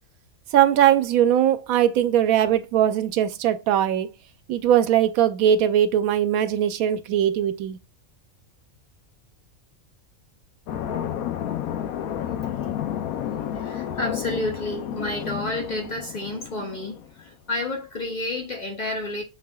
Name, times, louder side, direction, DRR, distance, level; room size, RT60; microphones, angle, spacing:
voice 1, 0.5-4.1 4.5-7.8, right 10 dB, 85° right, 1.0 m, -20 dB
sound 1, 10.7-17.1, left 10 dB, 85° left, 1.0 m, -31 dB
voice 2, 13.5-19.2, left 2 dB, 45° left, 0.7 m, -30 dB
6.4 x 3.4 x 2.2 m
omnidirectional pair, 1.4 m